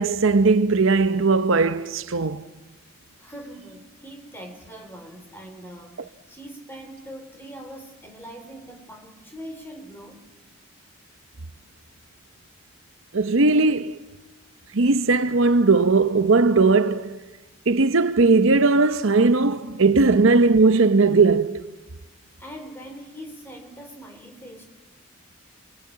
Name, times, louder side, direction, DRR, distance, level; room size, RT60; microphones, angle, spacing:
voice 1, 0.0-2.4 13.1-14.0 14.7-17.2 17.7-21.6, right 3 dB, 65° right, 0.8 m, -18 dB
voice 2, 3.2-10.3 22.4-24.6, equal, 10° left, 3.6 m, -42 dB
28.0 x 23.0 x 8.7 m
head